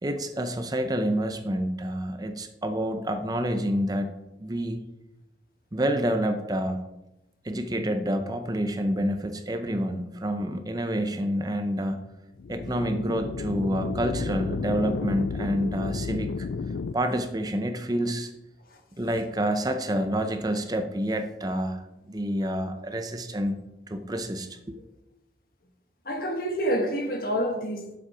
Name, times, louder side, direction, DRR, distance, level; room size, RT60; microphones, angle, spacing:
voice 1, 0.0-4.1 4.4-4.8 5.7-6.8 7.4-12.0 12.5-16.5 16.9-18.3 19.0-23.6 23.9-24.8, equal, 20° right, 0.7 m, -28 dB
sound 1, 12.4-16.9, left 4 dB, 85° left, 0.4 m, -32 dB
voice 2, 26.0-27.9, equal, 55° left, 1.4 m, -28 dB
7.5 x 7.2 x 4.9 m
head